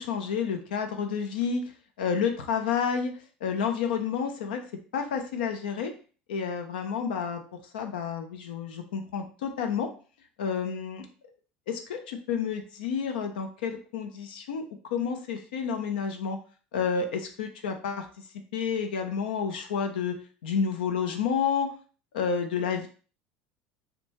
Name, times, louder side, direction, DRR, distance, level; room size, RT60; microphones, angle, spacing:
voice 1, 0.0-1.6 2.0-3.1 3.4-4.6 4.9-5.9 6.3-7.4 7.7-9.9 10.4-11.1 11.7-14.6 14.9-16.4 16.7-18.1 18.5-20.2 20.4-21.7 22.1-22.9, left 6 dB, 80° left, 5 dB, 0.4 m, -30 dB
2.6 x 2.2 x 2.8 m, 0.38 s
hypercardioid pair, 80°, 5 cm